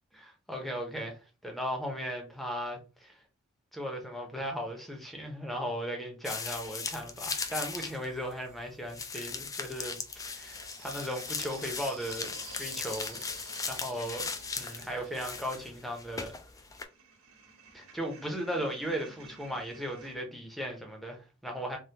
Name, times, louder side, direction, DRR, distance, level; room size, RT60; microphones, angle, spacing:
voice 1, 0.1-1.2 1.4-3.2 3.7-10.0 10.2-13.2 13.7-14.3 14.6-16.3 17.7-21.8, equal, ahead, 0.7 m, -37 dB
sound 1, 6.2-8.1 8.3-8.4 8.9-16.8, left 5 dB, 15° left, 0.3 m, -38 dB
sound 2, 7.1-8.9 9.7-20.2, right 4 dB, 80° right, 1.3 m, -52 dB
3.5 x 2.3 x 2.8 m
head